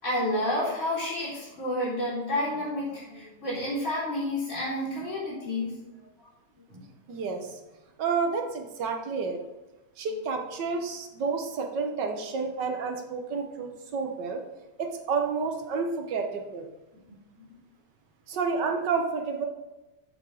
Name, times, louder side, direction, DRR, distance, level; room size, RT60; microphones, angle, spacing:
voice 1, 0.0-5.7 6.6-6.8 17.4-17.5 18.3-18.4, left 1 dB, 45° left, -9 dB, 4.1 m, -30 dB
voice 2, 7.1-7.6 8.0-9.4 10.0-14.4 14.8-16.7 18.3-19.5, right 5 dB, 85° right, 4 dB, 1.8 m, -30 dB
7.8 x 7.4 x 4.9 m, 1.0 s
omnidirectional pair, 1.8 m